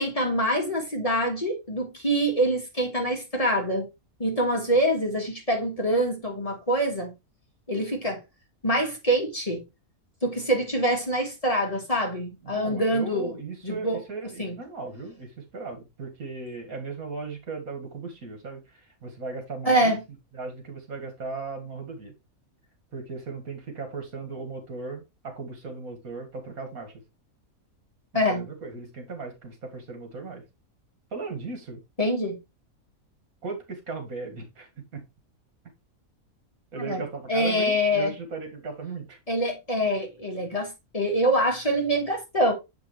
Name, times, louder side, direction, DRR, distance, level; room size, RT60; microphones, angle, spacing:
voice 1, 0.0-3.9 4.2-7.1 7.7-8.2 8.6-9.6 10.2-13.3 13.6-14.0 14.4-14.6 19.6-20.0 28.1-28.4 32.0-32.4 36.8-37.0 37.3-38.1 39.3-42.5, equal, 25° left, 1.6 m, -25 dB
voice 2, 12.4-19.9 20.3-22.1 22.9-26.9 28.3-30.4 31.1-31.8 33.4-35.0 36.7-39.2, right 4 dB, 75° right, 2.2 m, -37 dB
7.0 x 5.1 x 3.2 m
omnidirectional pair, 1.5 m